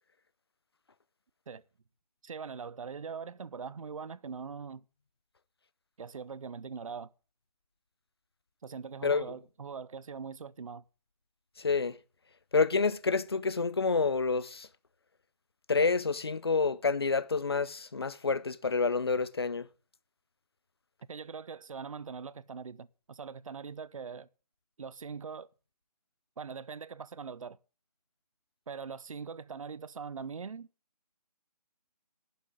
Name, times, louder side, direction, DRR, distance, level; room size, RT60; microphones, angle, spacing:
voice 1, 2.2-4.8 6.0-7.1 8.6-10.8 21.1-24.3 24.8-25.5 26.4-27.6 28.7-30.7, right 6 dB, 55° right, 0.5 m, -42 dB
voice 2, 11.6-12.0 12.5-14.7 15.7-19.7, left 4 dB, 40° left, 0.6 m, -28 dB
11.5 x 6.2 x 8.2 m
hypercardioid pair, 175°, 21 cm